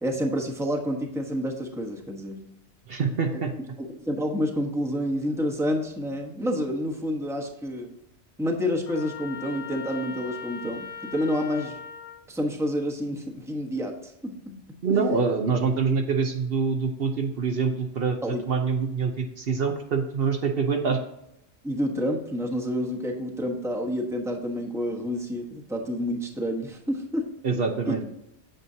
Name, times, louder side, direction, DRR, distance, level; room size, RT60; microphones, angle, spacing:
voice 1, 0.0-2.4 3.3-3.4 4.0-7.9 8.4-11.8 12.3-14.6 14.9-15.2 18.2-18.4 21.6-27.3 27.9-28.0, equal, 5° right, 1 dB, 1.1 m, -29 dB
voice 2, 2.9-3.5 14.8-21.0 27.4-28.0, right 5 dB, 60° right, 3 dB, 1.0 m, -25 dB
Trumpet, 8.8-12.2, left 6 dB, 40° left, 0.7 m, -39 dB
9.0 x 7.3 x 2.8 m, 0.83 s
omnidirectional pair, 1.2 m